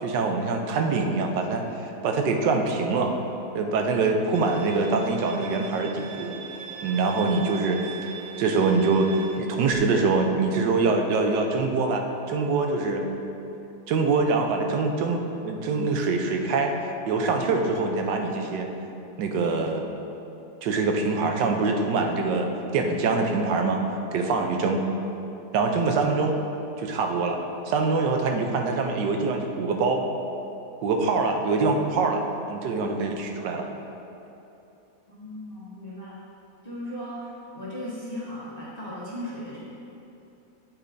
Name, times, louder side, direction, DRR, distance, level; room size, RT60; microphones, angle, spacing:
voice 1, 0.0-3.1 3.5-6.3 6.8-7.8 8.4-13.1 13.9-16.7 17.1-18.7 19.2-19.8 20.6-23.8 24.1-24.8 25.5-26.4 26.8-27.4 27.7-30.0 30.8-33.7, right 3 dB, 85° right, 3 dB, 1.4 m, -24 dB
Bowed string instrument, 4.3-9.4, right 7 dB, 65° right, 1.0 m, -41 dB
voice 2, 35.1-36.2 36.6-39.6, left 1 dB, 25° left, -10 dB, 1.6 m, -37 dB
8.8 x 8.2 x 2.6 m, 2.9 s
omnidirectional pair, 1.8 m